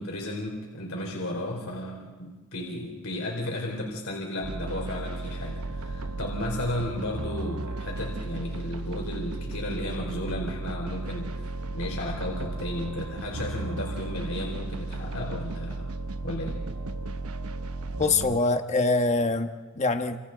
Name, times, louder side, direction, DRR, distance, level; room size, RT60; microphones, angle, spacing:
voice 1, 0.0-11.3 11.7-15.9 16.2-16.6, left 1 dB, 65° left, -1 dB, 3.7 m, -34 dB
sound 1, 4.4-18.4, right 2 dB, 75° right, 0.9 m, -34 dB
voice 2, 18.0-20.2, left 3 dB, 30° left, 6 dB, 1.3 m, -24 dB
30.0 x 26.5 x 3.9 m, 1.3 s
head